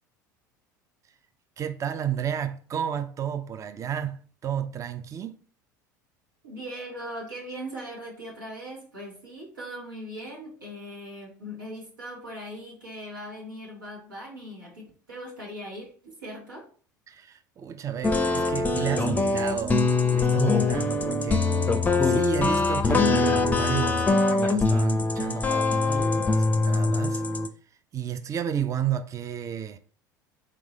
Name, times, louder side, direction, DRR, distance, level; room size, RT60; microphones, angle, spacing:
voice 1, 1.6-5.4 17.1-21.7 22.0-27.2 27.9-29.8, right 9 dB, 30° right, 0.5 m, -32 dB
voice 2, 6.4-16.7, equal, 90° right, 1.8 m, -40 dB
sound 1, 18.0-27.5, left 3 dB, 15° left, 0.5 m, -23 dB
3.8 x 3.6 x 3.2 m
hypercardioid pair, 75°, 10 cm